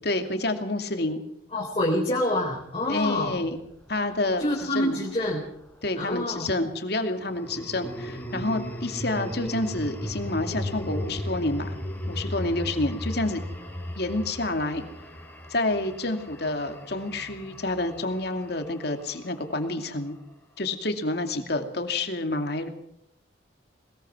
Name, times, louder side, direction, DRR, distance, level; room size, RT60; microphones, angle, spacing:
voice 1, 0.0-1.2 2.9-3.6 3.9-5.0 5.8-11.8 12.1-13.4 14.0-14.8 15.5-20.2 20.6-22.7, left 2 dB, 60° left, 6 dB, 2.6 m, -28 dB
voice 2, 1.5-3.5 4.4-5.4 6.0-6.5, left 1 dB, 30° left, -2 dB, 4.0 m, -27 dB
sound 1, 3.1-5.6 7.2-19.5, equal, 10° left, 4.4 m, -37 dB
21.5 x 20.5 x 6.1 m, 0.75 s
head